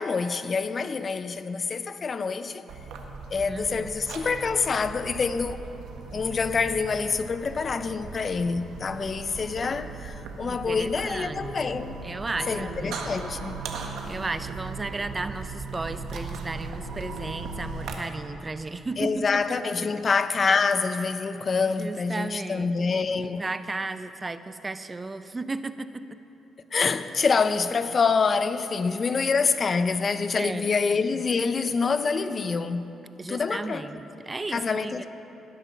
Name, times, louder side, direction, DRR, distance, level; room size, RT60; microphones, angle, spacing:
voice 1, 0.0-2.6 3.3-5.6 6.1-12.0 12.5-13.5 19.0-23.4 26.7-32.9 33.3-33.9 34.5-35.1, left 5 dB, 40° left, 0.6 m, -26 dB
sound 1, 2.7-18.0, right 4 dB, 80° right, 1.4 m, -38 dB
voice 2, 3.5-3.9 10.5-11.5 12.0-13.1 14.1-19.4 21.8-22.7 23.2-26.2 29.1-29.2 30.3-30.7 33.2-35.1, right 3 dB, 25° right, 0.5 m, -34 dB
18.5 x 8.2 x 5.8 m
cardioid pair, 90°, 0 cm